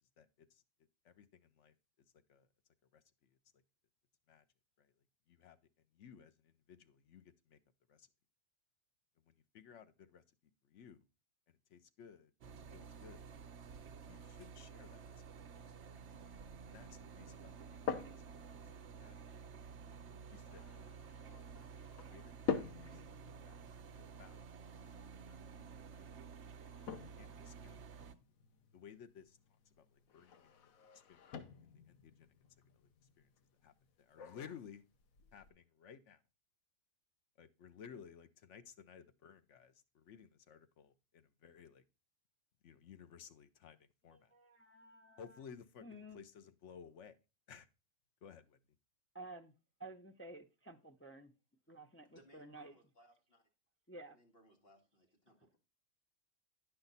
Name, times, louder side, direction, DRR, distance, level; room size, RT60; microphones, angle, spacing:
voice 1, 0.2-0.6 1.0-1.7 2.1-2.5 2.9-3.6 4.3-4.4 4.8-4.9 5.3-5.6 5.9-7.6 7.9-8.1 9.2-10.2 10.6-11.0 11.5-13.3 14.1-15.2 16.4-17.9 18.2-18.6 19.0-19.2 20.3-20.9 21.2-21.7 22.1-23.0 23.4-24.6 24.9-26.1 27.0-28.1 28.7-32.3 32.7-32.9 33.2-33.3 33.6-34.8 35.3-36.2 37.4-41.8 42.6-44.3 45.2-47.2 47.5-47.7 48.2-48.6, left 7 dB, 65° left, 1.0 m, -58 dB
sound 1, 12.4-28.1, right 6 dB, 65° right, 1.0 m, -52 dB
sound 2, 17.4-35.5, left 6 dB, 85° left, 1.2 m, -48 dB
voice 2, 44.1-45.4 45.8-46.2 49.1-49.5 49.8-51.3 51.7-52.8 53.9-54.2, right 2 dB, 20° left, 0.4 m, -53 dB
voice 3, 52.1-53.4 54.1-55.6, right 1 dB, 45° left, 2.3 m, -66 dB
10.0 x 5.8 x 4.0 m
omnidirectional pair, 1.4 m